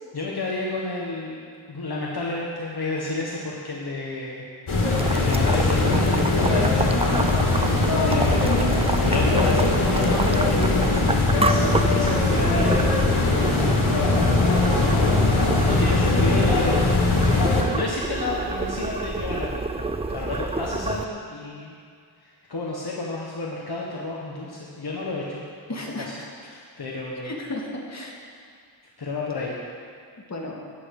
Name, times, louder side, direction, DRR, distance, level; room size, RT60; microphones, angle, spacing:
voice 1, 0.1-1.4 1.7-4.5 5.1-7.6 8.0-9.6 11.4-13.0 13.3-13.9 14.7-21.8 22.2-25.4 25.7-26.1 26.4-27.3 29.0-29.6, left 2 dB, 50° left, -4 dB, 1.6 m, -31 dB
sound 1, 4.7-17.6, left 2 dB, 90° left, 2.6 m, -21 dB
Boiling, 5.0-21.1, right 3 dB, 15° right, 0.4 m, -29 dB
voice 2, 9.1-11.1 25.7-26.1 27.2-28.1 30.3-30.6, left 3 dB, 35° left, -1 dB, 2.1 m, -30 dB
15.0 x 10.5 x 4.9 m, 2.2 s
wide cardioid pair, 100°, 48 cm